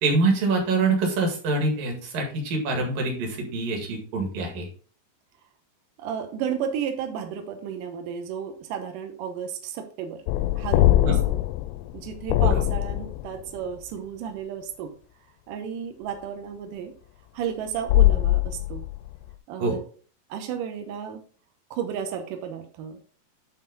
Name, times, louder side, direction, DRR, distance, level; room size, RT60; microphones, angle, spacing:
voice 1, 0.0-4.7 11.1-11.2 12.4-12.6 19.6-19.8, right 3 dB, 55° right, 2 dB, 3.1 m, -25 dB
voice 2, 6.0-10.2 10.6-11.3 11.9-14.9 15.5-16.9 17.3-18.8 19.5-19.8 20.3-21.2 21.7-23.0, right 8 dB, 90° right, 5 dB, 1.9 m, -33 dB
sound 1, 10.3-13.5 17.9-19.1, left 15 dB, 85° left, 2.5 m, -22 dB
11.5 x 4.0 x 3.9 m, 0.43 s
omnidirectional pair, 5.3 m